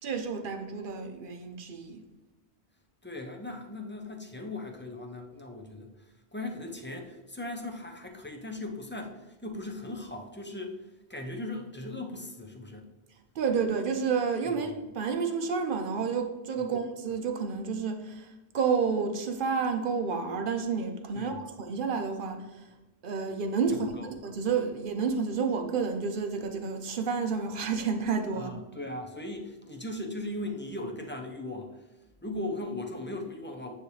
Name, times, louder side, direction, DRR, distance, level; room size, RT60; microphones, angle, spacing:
voice 1, 0.0-2.0 13.3-22.7 23.0-28.5, right 5 dB, 55° right, 0.9 m, -30 dB
voice 2, 3.0-10.8 11.1-12.9 14.5-14.8 16.6-16.8 21.1-21.4 23.7-24.1 28.3-31.8 32.2-33.7, left 2 dB, 15° left, 0.5 m, -38 dB
9.3 x 3.3 x 3.2 m
omnidirectional pair, 1.1 m